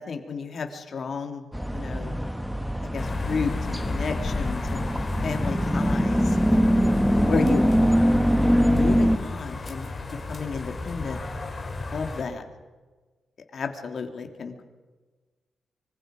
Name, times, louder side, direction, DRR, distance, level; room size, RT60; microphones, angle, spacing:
voice 1, 0.0-2.2 2.9-4.9 5.2-6.9 7.3-8.1 8.7-9.9 10.3-11.2 11.9-12.4 13.5-14.6, left 5 dB, 60° left, 5 dB, 3.2 m, -32 dB
sound 1, 1.5-9.2, equal, ahead, 1.4 m, -23 dB
sound 2, 3.0-12.2, left 3 dB, 35° left, 4.4 m, -33 dB
25.5 x 25.5 x 5.4 m, 1.3 s
cardioid pair, 100°, 0 cm